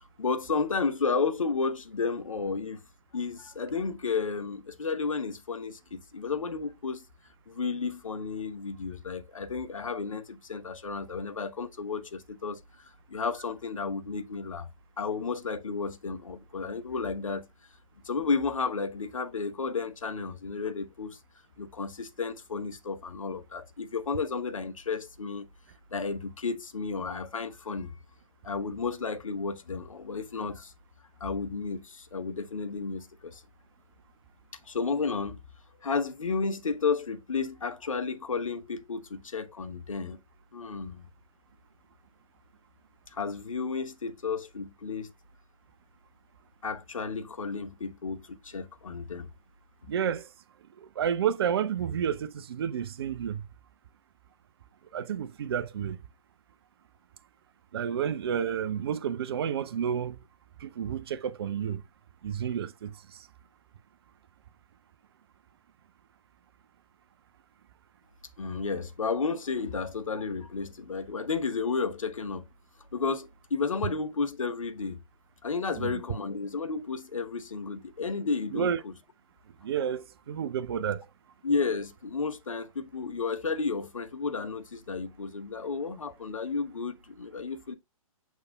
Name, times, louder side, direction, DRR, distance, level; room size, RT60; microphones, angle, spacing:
voice 1, 0.2-2.8 3.1-7.0 7.5-14.7 15.0-17.5 18.0-21.2 21.6-25.5 25.9-27.9 28.4-30.7 31.2-33.4 34.7-35.4 35.8-40.2 40.5-41.1 43.1-45.1 46.6-49.3 68.4-72.4 72.9-75.0 75.4-78.9 81.4-87.8, left 4 dB, 65° left, 1.1 m, -32 dB
voice 2, 49.9-50.3 50.8-53.4 54.9-56.0 57.7-60.2 60.6-61.8 62.2-63.3 75.8-76.0 78.5-78.8 79.6-81.0, right 8 dB, 45° right, 0.6 m, -30 dB
6.9 x 6.5 x 2.2 m
figure-of-eight pair, 125°, 18 cm